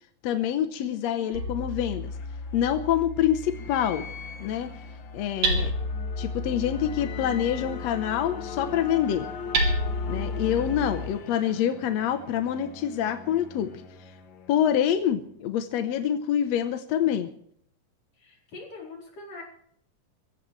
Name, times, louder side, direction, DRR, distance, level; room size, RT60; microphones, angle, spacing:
voice 1, 0.2-2.1 2.5-4.1 4.4-4.7 5.1-5.7 6.2-9.3 10.1-13.7 14.5-17.3, left 10 dB, 70° left, 8 dB, 1.7 m, -26 dB
voice 2, 0.8-1.4 5.6-5.9 10.5-10.8 18.2-19.4, left 3 dB, 45° left, -1 dB, 5.5 m, -44 dB
Hammer, 1.3-11.1, equal, 80° right, 4.6 m, -32 dB
sound 1, 1.5-15.2, left 6 dB, 90° left, 1.0 m, -42 dB
24.0 x 15.5 x 3.3 m, 0.65 s
omnidirectional pair, 4.1 m